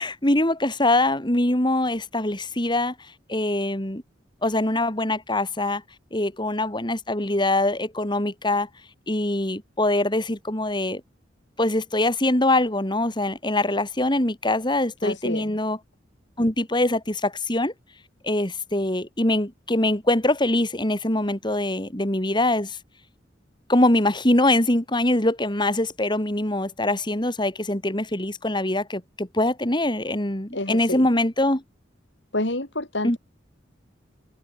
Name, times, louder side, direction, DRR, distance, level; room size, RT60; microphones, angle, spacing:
voice 1, 0.0-2.9 3.3-4.0 4.4-5.8 6.1-8.7 9.1-11.0 11.6-15.8 16.4-17.7 18.2-22.8 23.7-31.6 33.0-33.2, left 1 dB, 25° left, 4.0 m, -23 dB
voice 2, 15.0-15.5 30.5-31.1 32.3-33.2, left 1 dB, 70° left, 5.6 m, -28 dB
head